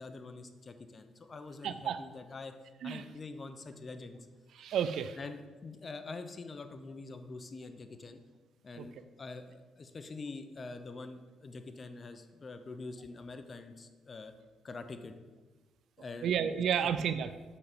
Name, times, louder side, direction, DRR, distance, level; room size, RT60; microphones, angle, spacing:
voice 1, 0.0-2.5 2.8-4.2 5.2-8.2 8.6-14.3 14.6-15.1 16.0-16.3 17.0-17.1, left 3 dB, 35° left, 8 dB, 0.8 m, -45 dB
voice 2, 1.6-2.0 2.8-3.0 4.6-5.2 8.8-8.9 16.2-17.3, right 8 dB, 70° right, 12 dB, 0.5 m, -31 dB
7.1 x 5.7 x 5.1 m, 1.3 s
cardioid pair, 90°, 0 cm